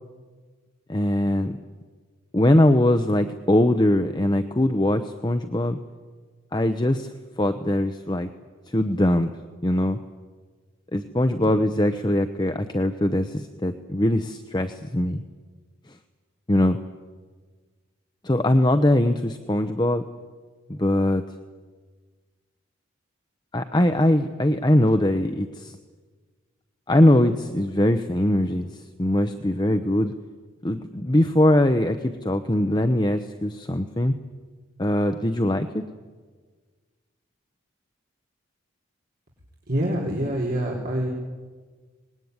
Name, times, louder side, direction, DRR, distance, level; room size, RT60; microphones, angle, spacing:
voice 1, 0.9-1.6 2.3-5.8 6.5-7.1 7.4-8.3 8.7-9.3 9.6-10.0 10.9-15.2 16.5-16.8 18.2-20.1 20.7-21.2 23.5-25.8 26.9-30.1 30.6-34.1 34.8-35.8, left 1 dB, 20° left, 7 dB, 0.8 m, -21 dB
voice 2, 39.7-41.1, right 1 dB, 45° right, -3 dB, 4.2 m, -25 dB
25.0 x 20.0 x 9.6 m, 1.5 s
head